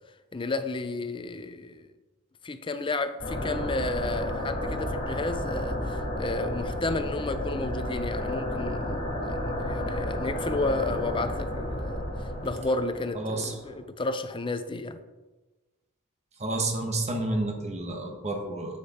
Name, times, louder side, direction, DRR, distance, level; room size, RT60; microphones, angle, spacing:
voice 1, 0.3-1.9 2.4-12.0 12.4-15.0, left 3 dB, 25° left, 0.5 m, -32 dB
sound 1, 3.2-13.8, left 1 dB, 40° left, 2.3 m, -32 dB
voice 2, 13.1-13.5 16.4-18.8, right 2 dB, 30° right, 1.1 m, -30 dB
7.6 x 6.4 x 4.2 m
head